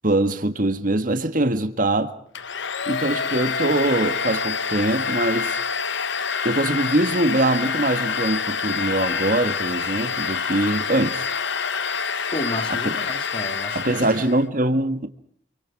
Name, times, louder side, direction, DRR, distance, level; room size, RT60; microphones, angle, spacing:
voice 1, 0.0-2.1 2.9-5.6 6.4-11.3 13.7-15.1, right 1 dB, 45° right, 1.8 m, -22 dB
Domestic sounds home sounds, 2.4-14.5, left 6 dB, 75° left, 1.0 m, -27 dB
voice 2, 12.3-14.1, left 1 dB, 30° left, 2.2 m, -31 dB
28.5 x 24.0 x 4.8 m
head